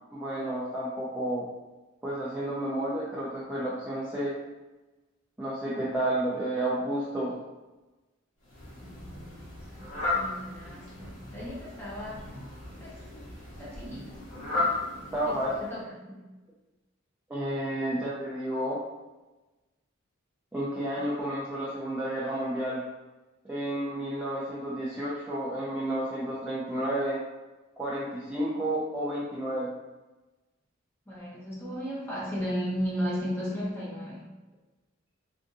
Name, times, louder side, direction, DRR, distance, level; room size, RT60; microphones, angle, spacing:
voice 1, 0.1-1.5 2.0-4.3 5.4-7.3 15.1-15.5 17.3-18.8 20.5-22.8 23.5-27.2 27.8-29.7, right 1 dB, 10° right, -9 dB, 0.5 m, -31 dB
Fowl, 8.4-15.8, left 3 dB, 70° left, 1.0 m, -35 dB
voice 2, 8.8-12.2 12.8-13.0 13.6-14.2 15.2-16.2 31.1-34.2, equal, 10° left, -7 dB, 1.0 m, -35 dB
3.5 x 2.5 x 2.6 m, 1.1 s
head